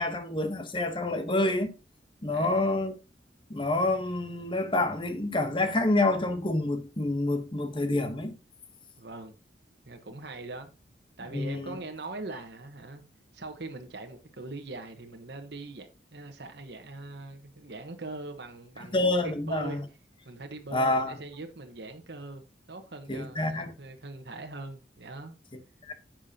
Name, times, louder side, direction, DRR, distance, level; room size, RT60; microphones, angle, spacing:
voice 1, 0.0-1.7 2.2-2.9 3.5-8.3 11.3-11.8 18.9-19.8 20.7-21.1 23.1-23.7 25.8-25.9, left 2 dB, 30° left, 1.0 m, -27 dB
voice 2, 2.3-2.7 9.0-9.4 9.8-10.7 11.2-13.0 13.3-19.8 20.2-22.4 22.7-25.3, right 2 dB, 65° right, 1.2 m, -42 dB
10.5 x 7.4 x 2.8 m
head